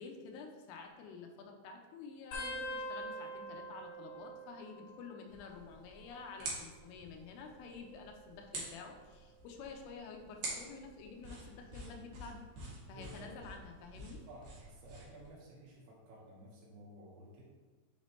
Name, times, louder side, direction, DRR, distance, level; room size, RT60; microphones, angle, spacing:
voice 1, 0.0-12.5 12.9-14.2, left 5 dB, 85° left, 3 dB, 3.3 m, -50 dB
sound 1, 2.3-5.5 5.8-6.4 7.4-8.8 9.5-9.8 11.0-11.4 12.9-13.0, equal, 65° left, 3.2 m, -46 dB
sound 2, 5.3-15.3, right 2 dB, 65° right, 2.1 m, -48 dB
voice 2, 12.9-13.4 14.3-17.4, right 1 dB, 90° right, -5 dB, 4.2 m, -54 dB
8.9 x 4.1 x 3.1 m, 1.3 s
omnidirectional pair, 5.6 m